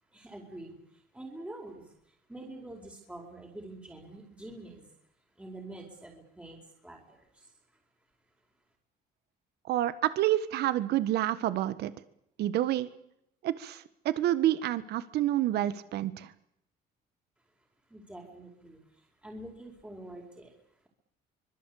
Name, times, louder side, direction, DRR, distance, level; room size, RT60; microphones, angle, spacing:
voice 1, 0.1-4.9 5.3-7.6 17.9-20.9, right 1 dB, 5° right, 1 dB, 4.8 m, -46 dB
voice 2, 9.6-11.9 12.4-12.9 13.4-16.3, right 13 dB, 75° right, 14 dB, 1.5 m, -28 dB
25.0 x 21.5 x 8.6 m, 0.77 s
cardioid pair, 110°, 17 cm